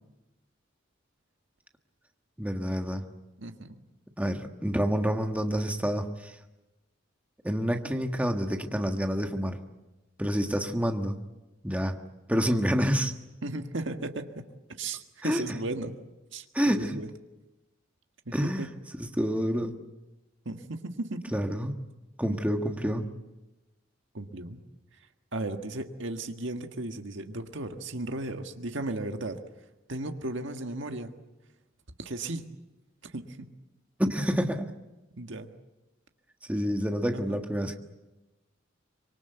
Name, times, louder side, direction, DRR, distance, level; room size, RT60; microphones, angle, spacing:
voice 1, 2.4-3.0 4.2-6.3 7.4-9.6 10.2-11.2 11.6-12.0 12.3-13.1 15.2-15.4 16.5-17.0 18.3-18.7 19.0-19.7 21.3-21.7 22.2-23.0 34.0-34.7 36.5-37.8, equal, 5° right, 5 dB, 1.6 m, -28 dB
voice 2, 3.4-3.8 13.4-14.4 14.8-16.0 16.3-17.1 18.2-18.7 20.4-21.3 22.3-22.4 24.1-24.6 25.3-29.4 29.9-31.1 32.0-32.4 33.0-33.5 35.2-35.5 37.3-37.4, right 2 dB, 65° right, 6 dB, 1.7 m, -35 dB
25.5 x 23.5 x 8.1 m, 1.0 s
head